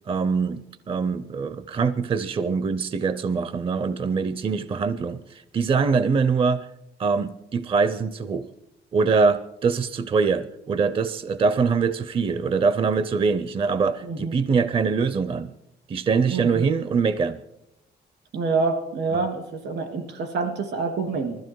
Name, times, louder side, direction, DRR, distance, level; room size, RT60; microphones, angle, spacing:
voice 1, 0.1-6.7 7.0-8.5 8.9-15.5 15.9-17.4 19.1-19.2, right 5 dB, 30° right, 15 dB, 0.5 m, -23 dB
voice 2, 16.3-16.6 18.3-21.4, right 4 dB, 85° right, 6 dB, 2.7 m, -27 dB
20.5 x 14.0 x 4.6 m, 0.83 s
wide cardioid pair, 160°, 18 cm